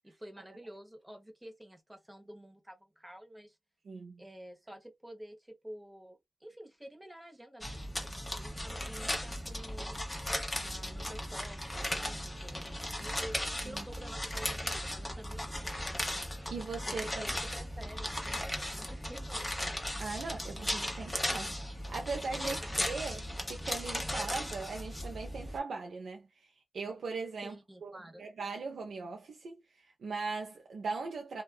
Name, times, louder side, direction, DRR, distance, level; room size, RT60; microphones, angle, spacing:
voice 1, 0.0-3.6 4.2-8.1 8.4-10.0 10.6-16.0 16.9-19.6 22.4-23.0 27.4-28.2, equal, 15° right, 0.9 m, -50 dB
voice 2, 3.9-4.2 13.6-13.8 16.5-17.2 20.0-27.5 27.8-27.9 28.2-31.4, right 4 dB, 90° right, 0.5 m, -39 dB
sound 1, 7.6-25.6, left 1 dB, 15° left, 0.8 m, -37 dB
sound 2, 9.1-21.9, left 2 dB, 75° left, 0.6 m, -61 dB
2.6 x 2.2 x 2.3 m
cardioid pair, 65°, 0 cm